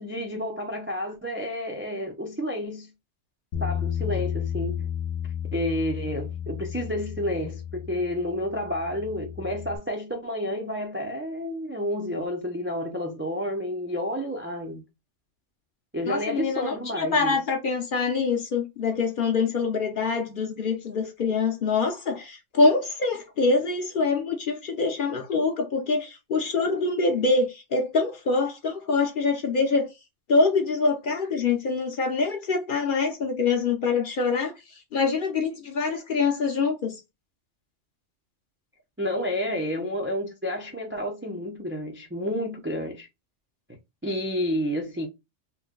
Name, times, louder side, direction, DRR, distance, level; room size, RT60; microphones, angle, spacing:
voice 1, 0.0-2.9 3.6-4.9 5.5-14.8 15.9-17.4 39.0-43.1 44.0-45.1, left 1 dB, 20° right, 0.3 m, -30 dB
Bass guitar, 3.5-9.8, left 9 dB, 80° left, 1.0 m, -32 dB
voice 2, 16.1-29.9 30.3-37.0, left 4 dB, 55° left, 0.7 m, -25 dB
3.1 x 2.1 x 3.6 m
omnidirectional pair, 1.2 m